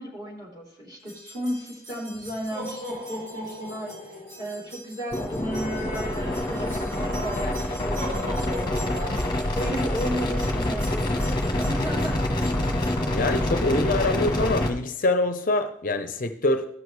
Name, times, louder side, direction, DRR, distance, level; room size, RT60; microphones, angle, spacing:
voice 1, 0.0-12.2, equal, 20° right, -6 dB, 3.9 m, -34 dB
sound 1, 1.1-13.0, equal, 75° right, 3.0 m, -39 dB
sound 2, 5.1-14.7, left 1 dB, 25° left, 1.2 m, -26 dB
voice 2, 13.1-16.7, left 2 dB, 45° left, 7 dB, 0.6 m, -24 dB
16.5 x 6.2 x 3.3 m, 0.77 s
head